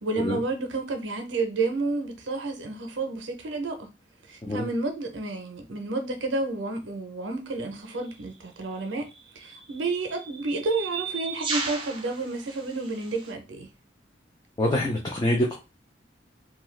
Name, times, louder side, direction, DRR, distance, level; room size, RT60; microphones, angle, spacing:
voice 1, 0.0-3.9 4.3-9.1 9.4-13.7, right 3 dB, 85° right, 0.6 m, -30 dB
sound 1, 7.9-8.1 9.1-13.3, right 5 dB, 30° right, 0.5 m, -36 dB
voice 2, 14.6-15.6, left 1 dB, 25° left, 0.4 m, -25 dB
2.6 x 2.3 x 3.1 m
head